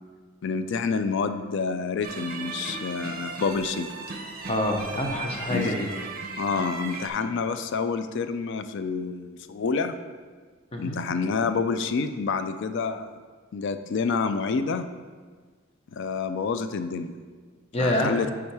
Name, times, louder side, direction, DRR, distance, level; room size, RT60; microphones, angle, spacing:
voice 1, 0.4-3.9 5.5-5.7 6.4-10.0 10.8-13.2 13.5-14.9 15.9-17.1 17.8-18.3, left 5 dB, 55° left, 10 dB, 0.3 m, -28 dB
sound 1, 2.0-7.1, right 4 dB, 40° right, 0.6 m, -36 dB
voice 2, 4.5-5.9 10.7-11.0 17.7-18.1, left 1 dB, 30° left, 1 dB, 0.8 m, -26 dB
8.3 x 3.7 x 4.7 m, 1.5 s
head